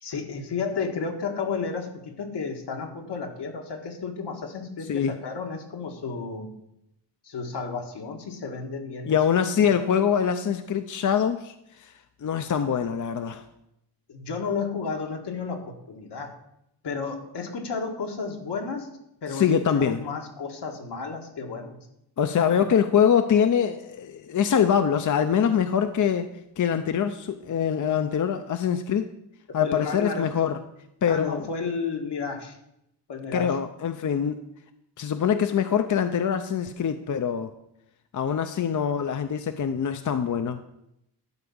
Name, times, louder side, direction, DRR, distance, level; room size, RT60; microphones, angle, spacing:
voice 1, 0.0-6.5 7.2-9.2 9.5-9.6 14.1-16.3 16.8-18.9 19.2-21.8 22.5-22.6 29.5-30.3 31.1-32.6 33.1-33.6, left 5 dB, 80° left, 2 dB, 1.8 m, -32 dB
voice 2, 9.1-11.9 12.2-13.4 19.3-20.0 22.2-26.3 26.6-29.1 29.5-30.6 31.0-31.4 33.3-34.4 35.0-37.5 38.1-40.6, left 8 dB, 50° left, 8 dB, 0.6 m, -24 dB
12.0 x 4.8 x 7.0 m, 0.81 s
wide cardioid pair, 120°, 41 cm